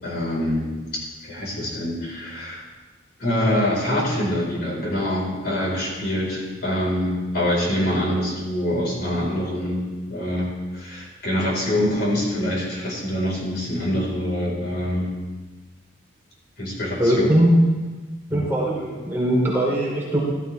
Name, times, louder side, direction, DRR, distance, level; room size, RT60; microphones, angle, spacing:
voice 1, 0.0-2.7 3.2-15.1 16.6-17.3 18.3-18.5, left 1 dB, 55° left, -3 dB, 4.4 m, -25 dB
voice 2, 17.0-17.6 18.3-20.2, equal, 10° right, -5 dB, 2.9 m, -20 dB
15.5 x 12.5 x 3.4 m, 1.3 s
head